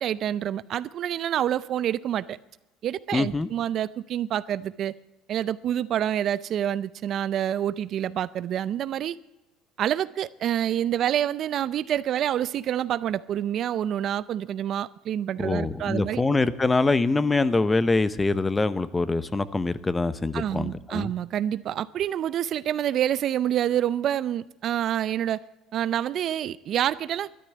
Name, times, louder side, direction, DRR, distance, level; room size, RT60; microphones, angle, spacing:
voice 1, 0.0-2.4 2.8-4.9 5.3-9.2 9.8-16.2 20.3-25.4 25.7-27.3, right 10 dB, 50° right, 17 dB, 0.5 m, -27 dB
voice 2, 3.1-3.5 15.4-21.1, left 3 dB, 15° left, 16 dB, 0.7 m, -24 dB
12.5 x 10.0 x 9.5 m, 0.96 s
supercardioid pair, 105°, 0 cm